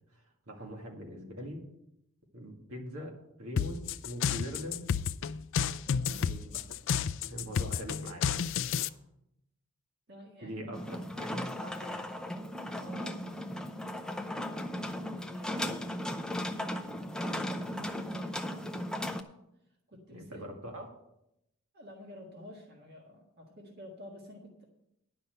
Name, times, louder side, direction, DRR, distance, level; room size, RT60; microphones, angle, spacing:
voice 1, 0.1-1.6 2.3-4.9 6.2-6.6 7.2-8.3 10.4-12.1 20.1-20.9, equal, 70° right, 1 dB, 2.1 m, -42 dB
sound 1, 3.6-8.9, left 7 dB, 55° left, 0.4 m, -31 dB
voice 2, 5.9-6.3 7.5-7.8 8.8-9.0 10.1-10.8 12.8-13.2 14.8-15.9 17.1-18.7 19.9-20.5 21.7-24.6, equal, 45° right, 0 dB, 1.7 m, -50 dB
sound 2, 10.7-19.2, left 1 dB, 5° left, 0.5 m, -36 dB
11.0 x 5.6 x 7.8 m, 0.83 s
head